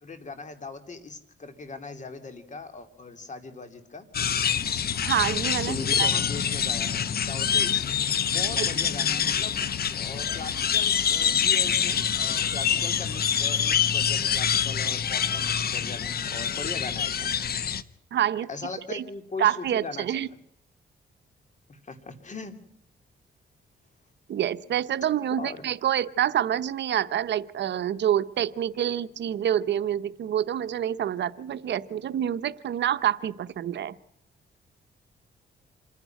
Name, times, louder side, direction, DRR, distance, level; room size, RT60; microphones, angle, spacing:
voice 1, 0.0-4.1 5.6-7.8 8.3-9.6 10.0-17.3 18.5-20.3 21.7-22.6 25.4-25.6, left 4 dB, 40° left, 8 dB, 2.8 m, -39 dB
sound 1, 4.1-17.8, left 8 dB, 55° left, 0.9 m, -26 dB
voice 2, 5.0-6.1 8.6-8.7 18.1-18.5 18.9-19.0 19.4-20.3 24.3-33.9, right 10 dB, 70° right, 14 dB, 0.8 m, -27 dB
27.0 x 10.5 x 9.1 m, 0.78 s
cardioid pair, 85°, 19 cm